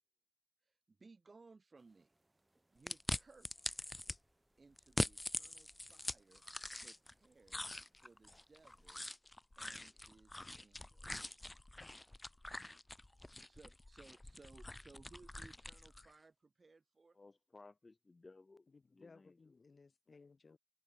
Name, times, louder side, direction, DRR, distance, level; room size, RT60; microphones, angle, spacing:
voice 1, 0.6-2.1 2.7-3.8 4.6-6.4 6.8-7.7 8.0-9.1 9.6-11.4 13.1-17.2, right 3 dB, 60° right, 1.1 m, -63 dB
sound 1, 1.7-9.0, right 2 dB, 30° right, 5.1 m, -80 dB
sound 2, 2.9-4.2 4.8-7.1 7.5-16.1, left 1 dB, 25° left, 0.3 m, -44 dB
voice 2, 17.1-19.4, left 3 dB, 50° left, 1.1 m, -60 dB
voice 3, 18.7-20.6, left 4 dB, 70° left, 1.1 m, -62 dB
wide cardioid pair, 65°, 0 cm